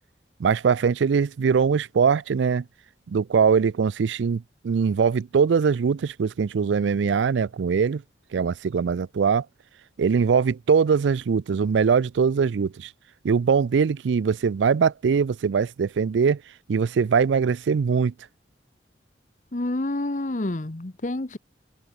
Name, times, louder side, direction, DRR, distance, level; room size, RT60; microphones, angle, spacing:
voice 1, 0.4-2.6 3.1-8.0 8.3-9.5 10.0-12.9 13.2-16.4 16.7-18.1, right 6 dB, 90° right, 0.4 m, -22 dB
voice 2, 19.5-21.4, left 1 dB, 45° left, 1.0 m, -28 dB
head